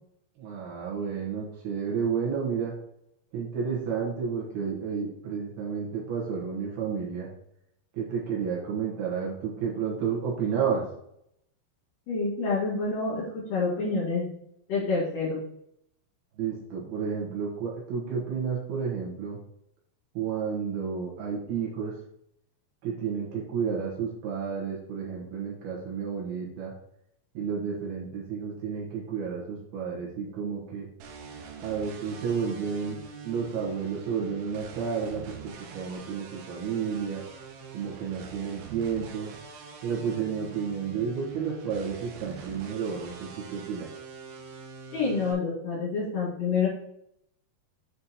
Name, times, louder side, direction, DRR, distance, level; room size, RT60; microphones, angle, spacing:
voice 1, 0.4-2.7 3.3-7.3 7.9-10.8 16.4-19.4 20.1-21.9 22.8-26.7 27.3-30.9 31.6-33.0 33.2-37.2 37.7-39.3 39.8-43.9, right 6 dB, 65° right, -3 dB, 2.9 m, -31 dB
voice 2, 12.1-14.3 14.7-15.4 44.9-46.7, left 4 dB, 55° left, -6 dB, 3.1 m, -27 dB
sound 1, 31.0-45.3, right 5 dB, 90° right, 3.3 m, -44 dB
9.5 x 4.3 x 2.9 m, 0.75 s
omnidirectional pair, 5.4 m